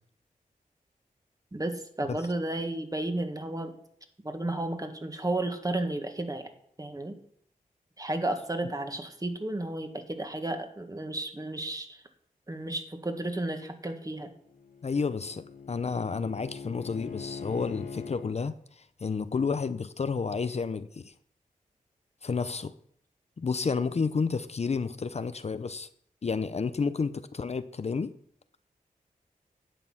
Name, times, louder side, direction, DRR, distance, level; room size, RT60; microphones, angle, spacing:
voice 1, 1.5-3.7 4.2-6.5 6.8-7.1 8.0-12.0 12.5-14.3, right 2 dB, 25° right, 1.8 m, -33 dB
Bowed string instrument, 14.3-18.3, left 5 dB, 65° left, 2.0 m, -42 dB
voice 2, 14.8-21.1 22.2-22.7 23.4-25.9 26.2-28.1, left 5 dB, 45° left, 0.6 m, -31 dB
11.0 x 8.4 x 5.7 m
cardioid pair, 65°, 15 cm